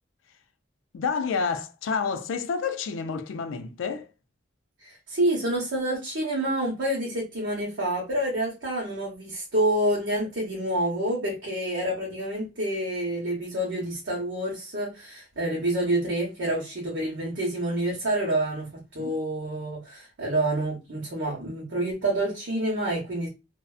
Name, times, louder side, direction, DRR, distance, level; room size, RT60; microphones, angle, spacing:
voice 1, 0.9-4.1 19.0-19.1, left 5 dB, 85° left, 0.4 m, -29 dB
voice 2, 4.9-18.7 18.9-23.3, right 1 dB, 65° right, 0.8 m, -28 dB
2.4 x 2.1 x 2.3 m
head